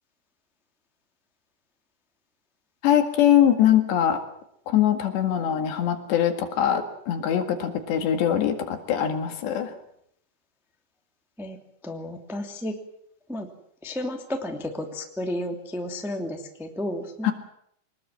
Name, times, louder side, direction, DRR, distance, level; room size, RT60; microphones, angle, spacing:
voice 1, 2.8-4.2 4.7-9.8 17.2-17.3, left 10 dB, 65° left, 6 dB, 3.9 m, -22 dB
voice 2, 11.8-12.7 13.3-13.5 13.8-17.3, left 1 dB, ahead, 3 dB, 0.7 m, -32 dB
24.5 x 20.5 x 7.7 m, 0.73 s
omnidirectional pair, 5.8 m